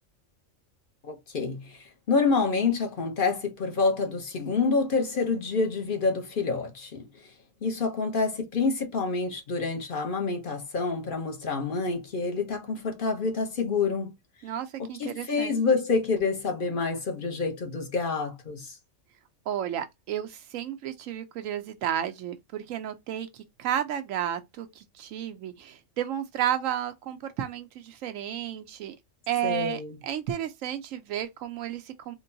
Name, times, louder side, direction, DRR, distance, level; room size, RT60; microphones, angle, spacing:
voice 1, 1.0-7.1 7.6-14.1 14.8-18.8 29.4-30.0, left 4 dB, 45° left, 0.9 m, -27 dB
voice 2, 14.4-15.6 19.5-29.0 29.3-32.2, right 10 dB, 85° right, 1.0 m, -32 dB
3.7 x 2.2 x 2.7 m
omnidirectional pair, 1.3 m